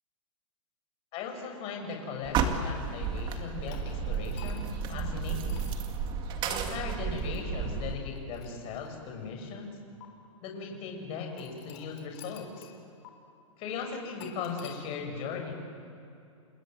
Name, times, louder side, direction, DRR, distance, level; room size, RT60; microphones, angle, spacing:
voice 1, 1.1-5.6 6.5-9.8 10.4-12.7 13.6-15.5, left 5 dB, 35° left, 2 dB, 6.5 m, -38 dB
sound 1, 2.2-8.0, right 5 dB, 25° right, 2.1 m, -32 dB
sound 2, 3.7-4.8 5.5-5.8 6.5-6.8 7.2-7.4 8.1-9.2 10.0-10.1 11.4-12.8 13.0-13.1 14.2-14.8, left 10 dB, 50° left, 3.9 m, -51 dB
29.5 x 19.0 x 9.2 m, 2.7 s
hypercardioid pair, 145°, 17 cm